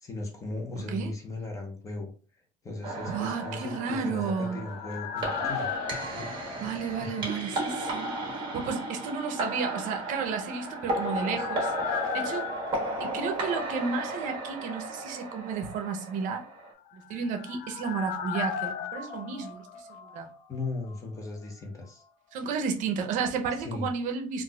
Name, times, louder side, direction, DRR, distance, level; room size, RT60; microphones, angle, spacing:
voice 1, 0.0-2.1 2.6-5.7 6.1-6.6 7.0-7.3 20.5-22.0 23.6-23.9, left 2 dB, 20° left, 0.8 m, -37 dB
sound 1, 2.8-16.7, right 1 dB, 30° right, 1.3 m, -35 dB
voice 2, 3.1-4.6 6.6-8.1 8.5-12.5 13.0-16.5 16.9-19.8 20.1-20.3 22.3-24.4, right 5 dB, 60° right, 0.6 m, -32 dB
sound 2, 3.8-7.7 7.9-8.0 10.4-14.2 14.4-14.5 16.8-20.6 20.9-21.0, left 7 dB, 75° left, 0.5 m, -37 dB
3.9 x 2.4 x 2.2 m
cardioid pair, 155°, 14 cm